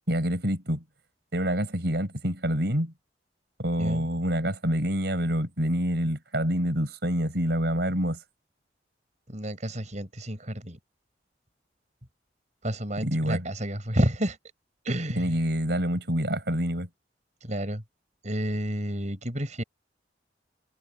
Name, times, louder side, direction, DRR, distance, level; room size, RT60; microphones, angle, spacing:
voice 1, 0.1-0.8 1.3-2.9 3.6-8.2 13.0-13.4 15.2-16.9, equal, 60° right, 7.1 m, -27 dB
voice 2, 9.3-10.8 12.6-14.4 14.8-15.4 17.4-17.8 18.2-19.6, equal, 40° right, 6.0 m, -30 dB
head